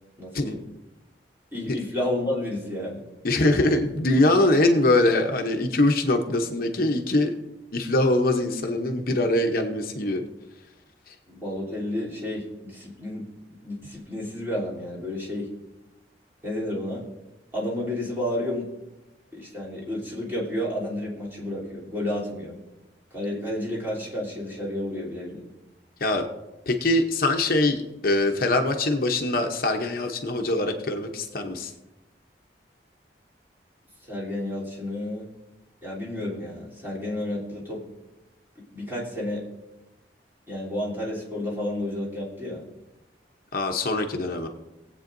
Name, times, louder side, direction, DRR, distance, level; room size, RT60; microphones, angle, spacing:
voice 1, 0.2-0.6 1.5-3.0 11.3-13.3 13.6-15.5 16.4-17.0 17.5-18.7 19.3-22.6 23.1-25.4 34.0-35.3 35.8-37.8 38.7-39.4 40.5-42.6, left 1 dB, 15° right, -6 dB, 3.1 m, -31 dB
voice 2, 3.2-7.3 7.7-10.2 11.1-11.2 26.0-26.2 26.7-31.7 43.5-44.5, left 2 dB, 55° left, 4 dB, 0.8 m, -23 dB
20.5 x 8.2 x 2.6 m, 1.0 s
head